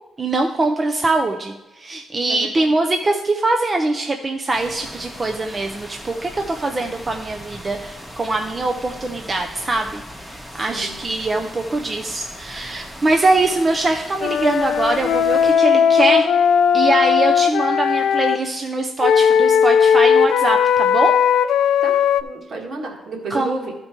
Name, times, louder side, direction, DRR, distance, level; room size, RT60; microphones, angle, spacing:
voice 1, 0.2-16.3 16.7-21.1 23.3-23.5, right 2 dB, 25° right, 3 dB, 0.5 m, -22 dB
voice 2, 2.3-2.7 6.8-6.9 10.7-11.0 21.8-23.7, right 3 dB, 60° right, 1 dB, 1.7 m, -31 dB
sound 1, 4.5-15.5, equal, 5° right, 1.1 m, -38 dB
Wind instrument woodwind instrument, 14.2-18.4 19.0-22.2, left 7 dB, 85° left, 0.4 m, -16 dB
12.5 x 4.4 x 4.4 m, 1.1 s
cardioid pair, 130°, 0 cm